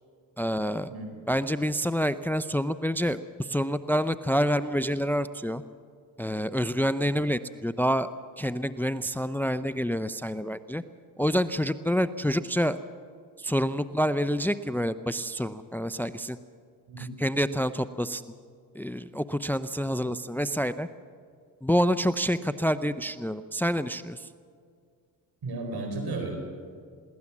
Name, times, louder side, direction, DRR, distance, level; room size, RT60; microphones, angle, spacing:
voice 1, 0.4-0.9 1.3-5.6 6.2-8.1 8.4-10.8 11.2-12.8 13.4-16.4 17.0-18.2 18.7-20.9 21.6-24.3, equal, 5° left, 13 dB, 0.6 m, -27 dB
voice 2, 25.4-26.4, right 2 dB, 65° right, 4 dB, 4.6 m, -34 dB
22.0 x 17.0 x 7.3 m, 2.1 s
supercardioid pair, 65°, 42 cm